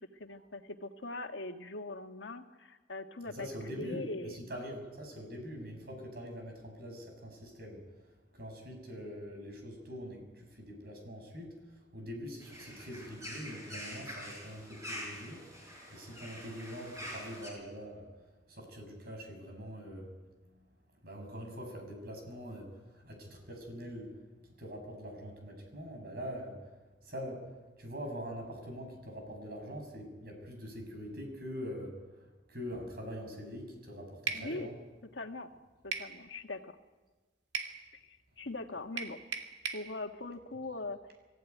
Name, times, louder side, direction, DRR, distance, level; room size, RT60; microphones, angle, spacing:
voice 1, 0.1-4.5 34.3-34.7 35.1-35.5 35.8-36.8 38.0-39.2 39.7-41.0, left 2 dB, 85° left, 5 dB, 1.7 m, -41 dB
voice 2, 3.3-18.1 18.5-20.1 20.4-20.7 21.0-24.2 24.6-27.5 27.8-34.7, equal, 55° right, 3 dB, 6.3 m, -44 dB
sound 1, 12.4-17.5, equal, 15° right, 6.7 m, -45 dB
sound 2, 34.3-34.5 35.9-36.1 37.5-37.8 39.0-39.9, right 6 dB, 75° right, 2.2 m, -36 dB
23.0 x 16.0 x 9.4 m, 1.2 s
head